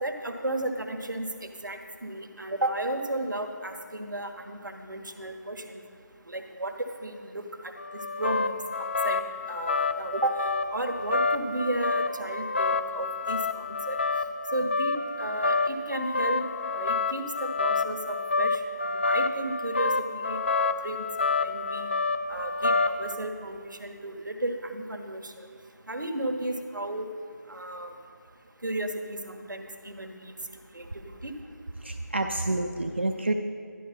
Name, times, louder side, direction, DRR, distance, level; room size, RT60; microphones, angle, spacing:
voice 1, 0.0-5.8 6.3-7.4 8.2-8.6 9.0-10.3 10.7-14.0 14.5-16.5 16.7-18.6 18.8-21.0 21.4-21.9 22.3-25.5 25.9-27.1 27.5-27.9 28.6-30.3 30.7-31.3, right 1 dB, 80° right, 5 dB, 1.4 m, -34 dB
sound 1, 7.8-23.1, left 3 dB, 35° left, 0.4 m, -28 dB
voice 2, 31.8-33.3, right 2 dB, 35° right, 4 dB, 0.5 m, -28 dB
12.0 x 11.5 x 4.2 m, 2.1 s
figure-of-eight pair, 175°, 10 cm